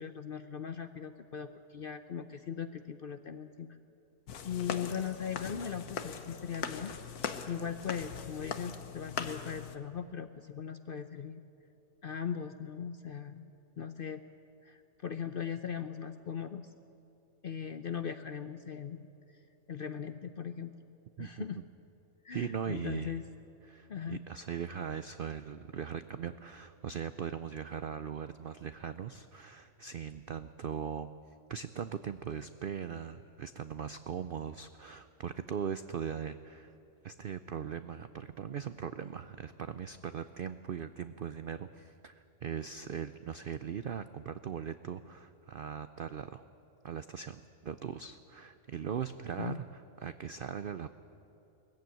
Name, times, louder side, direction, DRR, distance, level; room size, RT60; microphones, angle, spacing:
voice 1, 0.0-3.8 4.4-6.9 7.5-11.4 12.0-13.5 13.8-14.2 14.6-16.7 17.4-19.1 19.7-20.7 21.2-21.6 22.2-23.3 23.9-24.2 49.4-49.6, left 7 dB, 55° left, 9 dB, 0.6 m, -39 dB
sound 1, 4.3-9.8, left 7 dB, 80° left, 1.5 m, -40 dB
voice 2, 22.3-23.2 23.7-31.1 31.5-36.8 37.0-46.4 46.8-50.9, right 7 dB, 80° right, 11 dB, 0.4 m, -40 dB
20.0 x 15.0 x 9.2 m, 2.9 s
omnidirectional pair, 1.6 m